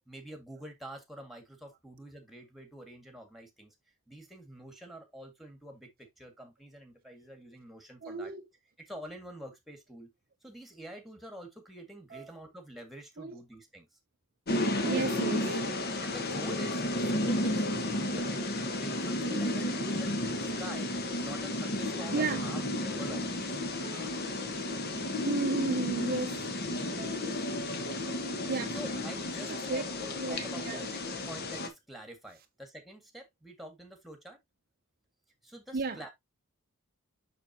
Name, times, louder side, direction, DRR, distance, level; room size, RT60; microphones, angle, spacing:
voice 1, 0.1-3.7 4.1-5.9 6.2-8.3 8.8-10.1 10.4-13.9 16.0-20.9 21.2-23.7 28.7-34.4 35.4-36.1, right 1 dB, ahead, 1.8 m, -47 dB
voice 2, 8.0-8.5 12.1-12.4 13.2-13.4 14.8-15.8 17.4-17.5 18.2-18.3 19.2-20.0 22.1-22.5 23.8-24.3 25.0-27.2 27.6-28.8 29.5-29.8 30.2-30.9 35.7-36.0, right 3 dB, 40° right, 0.6 m, -35 dB
sound 1, 14.5-31.7, left 1 dB, 45° left, 1.2 m, -33 dB
6.7 x 6.2 x 2.8 m
head